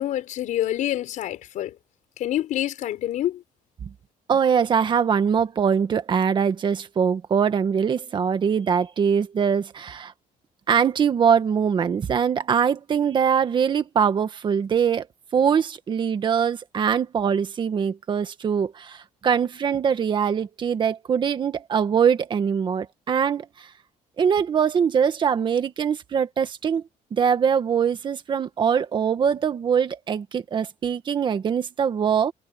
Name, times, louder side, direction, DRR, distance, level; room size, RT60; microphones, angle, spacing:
voice 1, 0.0-1.8 2.2-3.4, left 12 dB, 60° left, 5.7 m, -27 dB
voice 2, 4.3-10.1 10.7-15.1 15.3-23.4 24.2-26.8 27.1-32.3, right 7 dB, 35° right, 1.7 m, -22 dB
cardioid pair, 165°, 14 cm